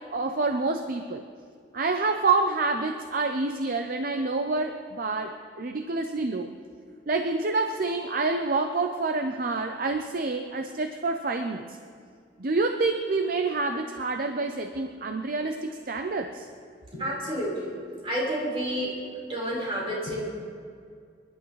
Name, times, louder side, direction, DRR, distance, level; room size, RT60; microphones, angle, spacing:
voice 1, 0.1-1.2 1.7-6.5 7.1-11.6 12.4-16.5, right 3 dB, 50° right, 6 dB, 0.6 m, -27 dB
voice 2, 16.9-17.8 18.0-18.9 19.3-20.2, equal, 35° right, -5 dB, 4.6 m, -29 dB
26.0 x 11.5 x 3.2 m, 2.2 s
head